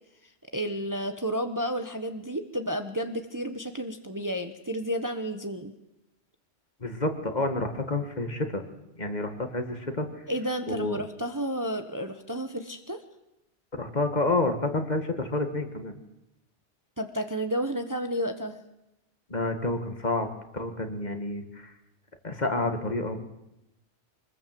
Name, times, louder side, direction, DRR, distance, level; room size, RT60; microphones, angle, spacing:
voice 1, 0.5-5.7 10.3-13.0 17.0-18.6, equal, 15° right, 7 dB, 1.1 m, -31 dB
voice 2, 6.8-8.7 9.0-10.1 10.7-11.0 13.8-15.9 19.3-20.3 20.5-21.7 22.2-23.2, left 2 dB, 40° left, 6 dB, 2.0 m, -29 dB
24.5 x 20.5 x 7.7 m, 0.90 s
omnidirectional pair, 1.2 m